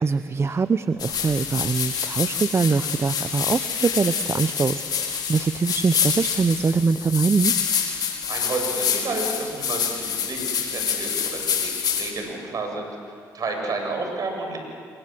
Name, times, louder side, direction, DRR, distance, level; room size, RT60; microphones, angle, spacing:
voice 1, 0.0-7.5, right 4 dB, 35° right, 13 dB, 0.7 m, -23 dB
sound 1, 1.0-12.1, left 7 dB, 65° left, 4.4 m, -27 dB
voice 2, 8.3-11.7 12.0-12.9 13.3-14.6, right 3 dB, 55° right, 2 dB, 7.9 m, -30 dB
28.0 x 23.5 x 7.8 m, 2.2 s
supercardioid pair, 65°, 7 cm